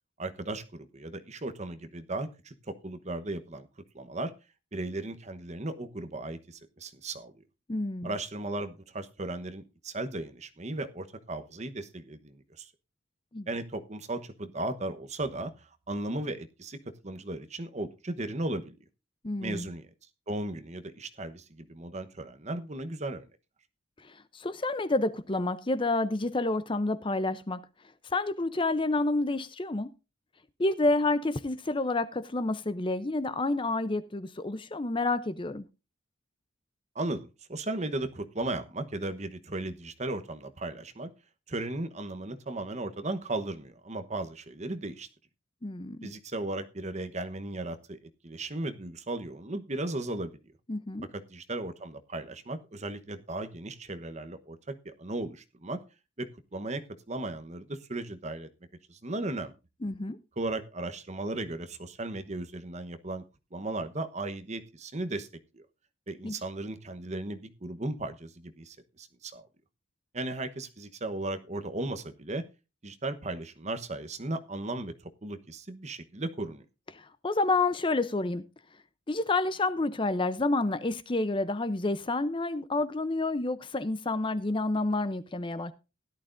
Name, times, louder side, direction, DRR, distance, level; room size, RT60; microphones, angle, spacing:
voice 1, 0.2-3.7 3.9-4.3 4.7-7.3 8.0-12.7 13.5-15.5 15.9-16.8 17.0-18.7 19.4-19.9 20.3-23.3 36.9-41.1 41.5-45.1 46.0-48.0 48.2-50.3 51.1-55.8 56.2-58.5 58.9-59.5 60.4-63.2 63.5-65.3 65.5-65.6 66.1-69.5 70.1-72.4 72.8-74.9 75.2-76.6, right 2 dB, 35° right, 1.0 m, -36 dB
voice 2, 7.7-8.1 13.3-13.5 19.2-19.7 24.0-27.6 28.1-29.9 30.6-35.7 45.6-46.1 50.7-51.1 59.8-60.2 66.2-66.4 76.9-78.4 79.1-85.7, left 2 dB, 25° left, 0.6 m, -29 dB
16.5 x 11.5 x 2.5 m
head